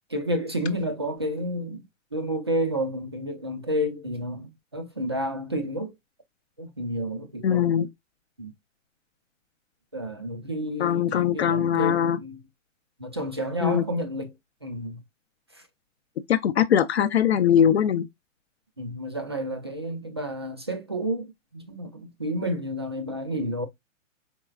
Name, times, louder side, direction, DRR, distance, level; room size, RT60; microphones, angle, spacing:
voice 1, 0.1-1.8 2.1-5.9 6.6-7.8 8.4-8.5 9.9-12.4 13.0-14.3 14.6-15.0 15.5-15.6 18.8-23.7, equal, 20° right, 0.4 m, -30 dB
voice 2, 7.4-7.9 10.8-12.2 13.6-13.8 16.3-18.0, left 9 dB, 55° left, 0.5 m, -21 dB
4.6 x 4.4 x 2.3 m
hypercardioid pair, 170°, 39 cm